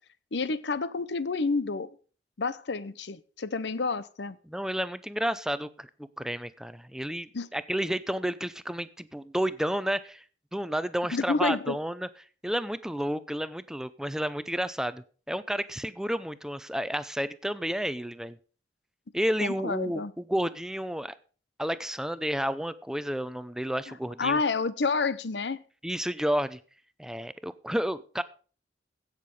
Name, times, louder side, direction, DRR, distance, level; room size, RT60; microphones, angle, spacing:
voice 1, 0.3-1.9 2.4-4.4 7.3-7.5 11.1-11.8 19.4-20.1 24.2-25.6, left 4 dB, 70° left, 0.7 m, -29 dB
voice 2, 4.4-10.2 10.5-12.1 12.4-18.4 19.1-21.1 21.6-24.4 25.8-26.6 27.0-28.2, equal, 5° right, 0.6 m, -31 dB
16.0 x 6.7 x 5.3 m
head